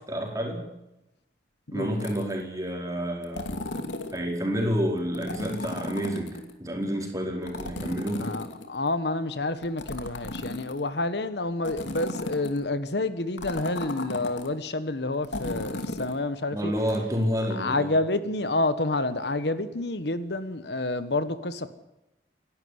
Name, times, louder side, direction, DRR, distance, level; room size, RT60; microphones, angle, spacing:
voice 1, 0.1-0.6 1.7-3.5 4.1-8.3 16.5-17.9, equal, 20° right, 4.7 m, -29 dB
sound 1, 2.0-2.4 3.2-4.2 5.1-6.5 7.5-8.9 9.6-10.9 11.6-12.6 13.4-14.5 15.2-16.2 16.9-17.0, left 2 dB, 80° left, 2.6 m, -35 dB
voice 2, 8.2-16.7 17.6-21.7, left 2 dB, 65° left, 1.3 m, -29 dB
28.0 x 12.0 x 9.6 m
head